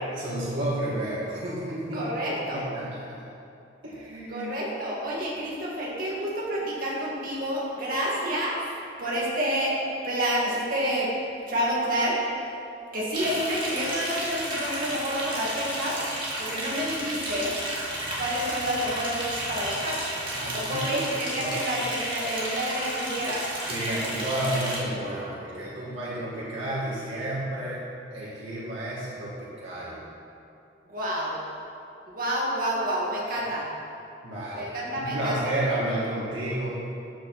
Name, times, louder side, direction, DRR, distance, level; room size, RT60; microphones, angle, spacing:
voice 1, 0.1-2.0 2.3-2.9 3.8-4.5 20.3-21.0 21.4-21.5 23.7-27.8 28.1-30.0 34.2-34.7 35.0-36.7, right 1 dB, 90° right, -9 dB, 2.3 m, -31 dB
voice 2, 1.9-2.7 4.3-8.6 9.0-9.8 10.0-11.1 11.5-12.2 12.9-16.0 16.4-17.5 18.2-20.0 20.5-23.4 30.9-31.4 32.1-33.7 34.5-35.5, equal, 50° right, -5 dB, 2.5 m, -29 dB
Liquid, 13.1-24.8, right 1 dB, 25° right, 2.2 m, -32 dB
13.5 x 6.8 x 4.4 m, 2.7 s
head